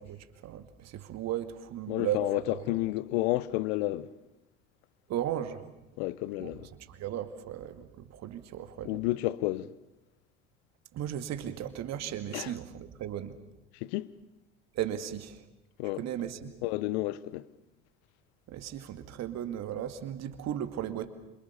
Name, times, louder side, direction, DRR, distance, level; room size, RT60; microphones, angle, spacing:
voice 1, 0.0-2.7 5.1-5.6 6.4-6.5 6.9-9.0 10.9-13.4 14.7-15.5 15.9-16.5 18.5-21.1, right 10 dB, 45° right, 2.2 m, -36 dB
voice 2, 1.9-4.1 6.0-6.7 8.8-9.7 12.3-12.5 13.7-14.1 15.8-16.0 16.6-17.5, left 18 dB, 55° left, 1.0 m, -31 dB
27.0 x 25.5 x 7.0 m
figure-of-eight pair, 65°, 38 cm